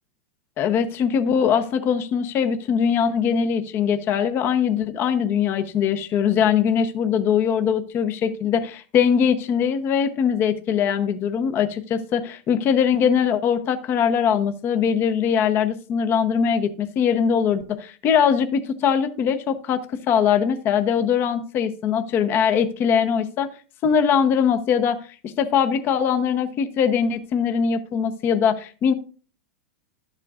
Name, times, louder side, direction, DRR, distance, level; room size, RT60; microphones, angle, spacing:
voice 1, 0.6-19.8 20.1-23.5 23.8-25.0 25.2-28.9, left 7 dB, 35° left, 9 dB, 0.7 m, -21 dB
12.0 x 7.4 x 2.4 m, 0.37 s
supercardioid pair, 130°, 7 cm